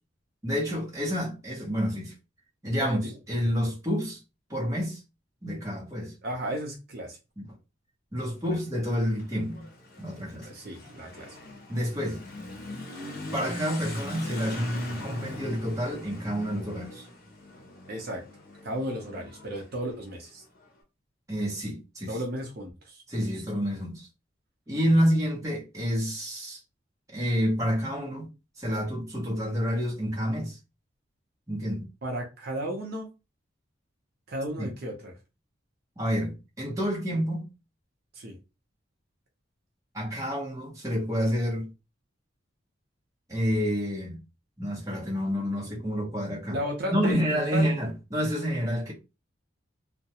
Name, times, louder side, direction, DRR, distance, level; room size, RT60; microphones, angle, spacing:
voice 1, 0.4-2.1 2.6-4.2 4.5-5.0 5.4-6.1 7.4-7.5 8.1-9.7 10.0-10.5 11.7-12.2 13.3-17.1 21.3-22.2 23.1-24.1 24.7-26.6 27.1-28.3 28.6-30.6 31.5-31.9 34.6-34.7 36.0-37.5 39.9-41.7 43.3-44.2 44.6-46.6 46.9-48.9, equal, 15° right, 0.9 m, -28 dB
voice 2, 2.8-3.2 6.2-7.2 10.4-11.4 17.9-18.2 18.6-20.4 22.1-23.3 32.0-33.1 34.3-35.1 38.1-38.4 46.5-47.2 47.5-47.7, equal, 55° right, 0.6 m, -34 dB
Motorcycle / Accelerating revving vroom, 8.4-20.7, left 2 dB, 50° left, 0.8 m, -42 dB
2.3 x 2.1 x 2.8 m
head